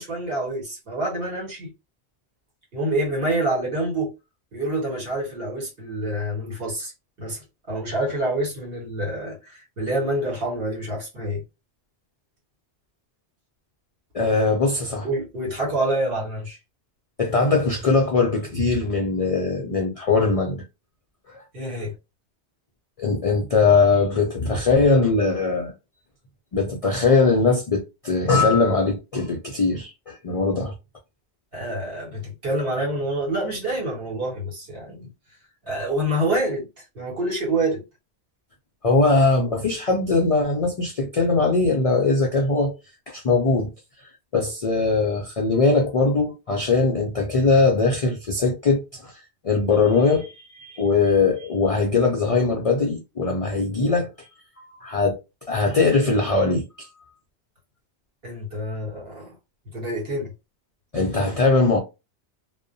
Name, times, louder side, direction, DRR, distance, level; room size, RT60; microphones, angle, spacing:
voice 1, 0.0-1.7 2.7-4.1 4.5-6.9 7.2-11.4 15.0-16.6 21.5-21.9 31.5-35.1 35.6-37.8 58.2-59.3 59.7-60.3, right 1 dB, 60° right, 1.5 m, -27 dB
voice 2, 14.1-15.1 17.2-20.6 21.3-21.4 23.0-25.7 26.5-30.7 38.8-42.7 43.1-43.7 44.3-54.3 54.6-55.2 55.5-56.9 60.9-61.8, left 3 dB, 55° left, 0.4 m, -21 dB
2.5 x 2.0 x 2.6 m
omnidirectional pair, 1.1 m